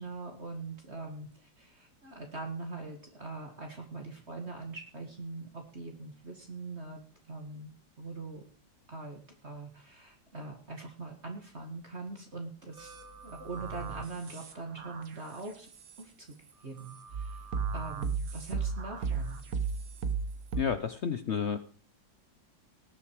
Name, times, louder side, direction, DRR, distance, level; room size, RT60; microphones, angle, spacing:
voice 1, 0.0-7.7 8.0-8.4 8.9-15.7 16.0-16.4 16.6-19.4, right 3 dB, 35° right, 3 dB, 2.1 m, -42 dB
sound 1, 12.8-16.0 16.8-20.6, right 5 dB, 50° right, 1.6 m, -36 dB
voice 2, 20.6-21.6, left 7 dB, 70° left, 11 dB, 0.6 m, -31 dB
19.0 x 7.1 x 4.7 m, 0.40 s
omnidirectional pair, 2.0 m